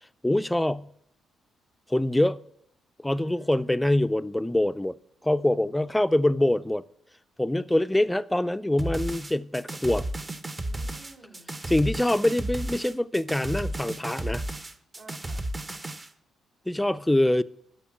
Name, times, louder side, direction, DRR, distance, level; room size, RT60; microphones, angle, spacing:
voice 1, 0.2-0.9 1.9-2.4 3.0-4.9 5.2-6.8 7.4-10.1 11.7-14.4 16.7-17.4, left 1 dB, 5° left, 0.4 m, -24 dB
voice 2, 3.1-4.1 5.5-6.3 10.6-11.6 14.9-15.4, right 2 dB, 65° right, 3.1 m, -53 dB
sound 1, 8.8-16.1, right 1 dB, 25° right, 0.7 m, -33 dB
12.5 x 5.6 x 8.6 m
cardioid pair, 90°, 0 cm